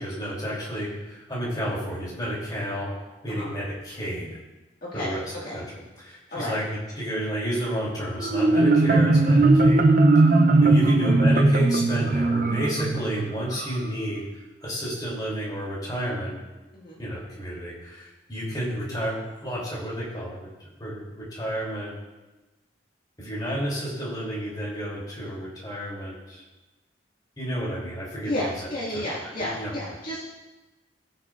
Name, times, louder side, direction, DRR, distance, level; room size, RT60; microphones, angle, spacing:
voice 1, 0.0-2.9 3.2-4.4 4.9-5.2 5.5-5.6 6.0-9.8 10.2-14.2 14.6-16.4 17.0-20.5 20.8-22.0 23.2-26.4 27.4-28.5 28.9-29.0 29.4-29.7, equal, 25° left, -6 dB, 3.1 m, -31 dB
voice 2, 4.8-5.1 5.4-5.6 6.3-6.6 16.7-17.0 28.2-30.2, left 1 dB, 50° left, -7 dB, 2.0 m, -31 dB
Marimba xylophone, 8.2-13.8, right 2 dB, 45° right, 0.6 m, -19 dB
18.0 x 6.6 x 2.5 m, 1.1 s
head